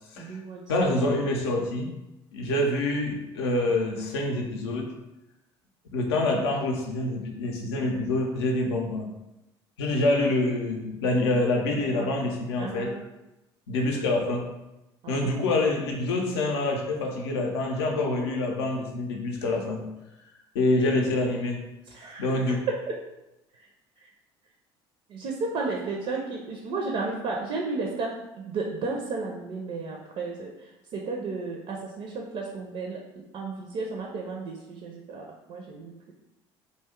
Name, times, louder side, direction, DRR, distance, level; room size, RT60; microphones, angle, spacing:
voice 1, 0.2-0.9 11.8-12.1 12.6-13.1 15.0-15.3 21.9-22.4 23.5-23.7 24.0-24.1 25.1-33.0 33.3-36.1, right 3 dB, 50° right, 0 dB, 0.5 m, -33 dB
voice 2, 0.7-1.9 2.3-4.9 5.9-9.1 9.8-12.9 13.7-14.5 15.1-19.9 20.5-21.6 22.2-22.6, left 2 dB, 80° left, 2 dB, 0.5 m, -26 dB
2.5 x 2.2 x 3.5 m, 0.96 s
hypercardioid pair, 60°, 13 cm